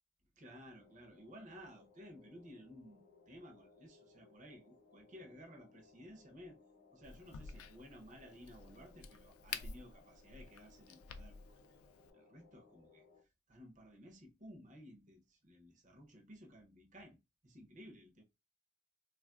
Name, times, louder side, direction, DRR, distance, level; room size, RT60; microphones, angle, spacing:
voice 1, 0.4-6.6 6.9-11.8 12.1-13.0 13.5-17.2 17.4-18.2, equal, 35° right, 0.6 m, -56 dB
sound 1, 0.8-13.2, left 3 dB, 55° left, 0.8 m, -65 dB
Crack, 7.0-12.1, left 6 dB, 80° left, 0.3 m, -50 dB
3.2 x 2.3 x 2.3 m
head